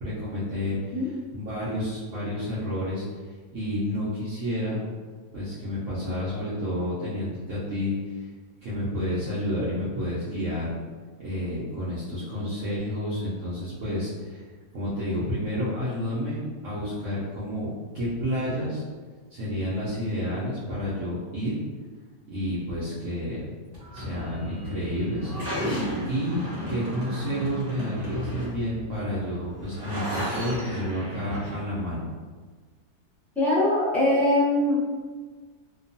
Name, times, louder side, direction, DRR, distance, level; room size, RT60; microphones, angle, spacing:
voice 1, 0.0-3.0 3.5-4.8 5.3-8.3 8.6-10.7 11.2-14.4 14.7-16.4 16.6-18.8 19.3-21.6 22.3-23.5 23.9-25.3 26.1-26.4 26.7-32.1, left 1 dB, 65° right, -10 dB, 0.9 m, -30 dB
sound 1, 23.7-31.5, equal, 45° right, 0.9 m, -34 dB
voice 2, 33.4-34.7, left 1 dB, ahead, -11 dB, 0.6 m, -22 dB
2.9 x 2.2 x 2.6 m, 1.4 s
omnidirectional pair, 1.7 m